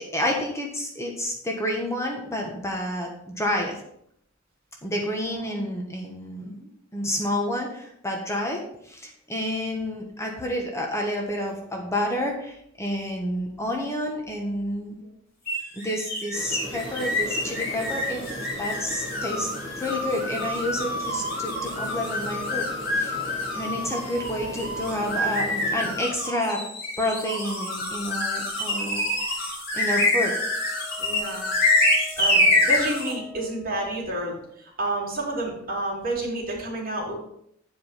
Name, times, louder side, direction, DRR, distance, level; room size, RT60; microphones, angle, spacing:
voice 1, 0.0-3.8 4.8-15.0 15.7-18.3 18.6-22.7 22.9-23.2 23.5-26.6 27.0-30.3, left 1 dB, 15° left, 0 dB, 1.2 m, -29 dB
sound 1, 15.5-33.1, left 1 dB, 50° left, 3.7 m, -26 dB
sound 2, 16.3-26.0, equal, 30° left, 3.7 m, -38 dB
voice 2, 23.5-23.9 31.0-31.4 32.2-37.1, right 2 dB, 50° right, -2 dB, 2.9 m, -30 dB
Wind instrument woodwind instrument, 30.1-34.3, left 1 dB, ahead, 2.5 m, -44 dB
8.6 x 5.1 x 5.7 m, 0.72 s
head